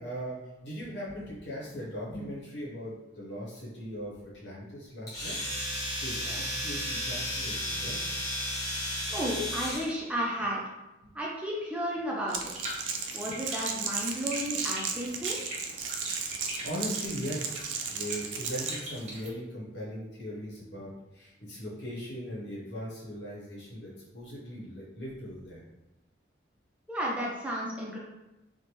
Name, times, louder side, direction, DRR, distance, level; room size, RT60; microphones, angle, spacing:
voice 1, 0.0-5.4 6.0-8.0 11.0-11.1 13.3-13.4 16.0-25.6, equal, 65° left, -5 dB, 1.0 m, -39 dB
Domestic sounds home sounds, 5.1-9.9, equal, 20° left, 0.8 m, -33 dB
voice 2, 9.1-10.6 11.1-12.5 13.1-15.4 26.9-28.0, equal, 5° right, -4 dB, 0.3 m, -33 dB
Crackle, 12.3-18.8, right 6 dB, 80° right, 0.4 m, -35 dB
sound 1, 12.5-19.3, right 1 dB, 40° right, 0.7 m, -42 dB
3.2 x 2.1 x 2.9 m, 1.0 s
head